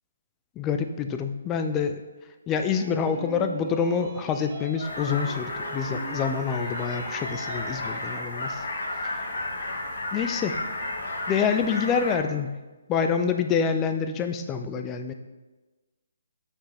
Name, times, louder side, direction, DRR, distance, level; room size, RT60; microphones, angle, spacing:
voice 1, 0.6-2.0 2.5-8.6 9.1-9.3 10.1-10.6 11.3-12.5 12.9-15.1, left 6 dB, 15° left, 7 dB, 0.3 m, -27 dB
sound 1, 2.5-8.0, right 5 dB, 25° right, 0.9 m, -42 dB
sound 2, 4.8-12.2, left 2 dB, 50° left, 1.7 m, -33 dB
8.5 x 5.9 x 3.4 m, 1.2 s
hypercardioid pair, 170°, 0 cm